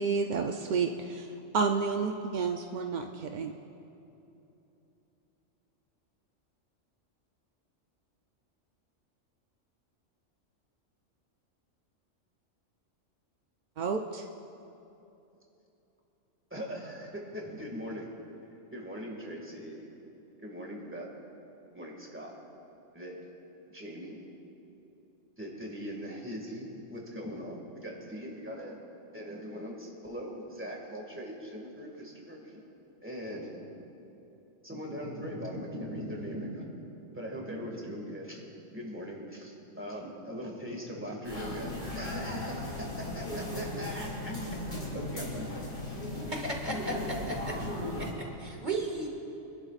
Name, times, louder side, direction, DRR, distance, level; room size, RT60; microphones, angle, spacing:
voice 1, 0.0-3.5 13.8-14.3, right 5 dB, 60° right, 4 dB, 0.5 m, -30 dB
voice 2, 16.5-18.1 18.7-19.8 20.4-21.1 21.7-22.3 22.9-23.2 23.7-24.2 25.4-28.8 29.1-32.6 33.0-33.7 34.6-36.7 37.1-38.4 38.7-44.3 44.9-45.5, equal, 10° right, -2 dB, 1.9 m, -40 dB
sound 1, 41.2-48.1, left 1 dB, 55° left, 3.5 m, -37 dB
voice 3, 46.3-47.6 48.0-49.1, right 1 dB, 40° right, 1 dB, 1.3 m, -35 dB
25.0 x 11.5 x 2.5 m, 3.0 s
omnidirectional pair, 1.3 m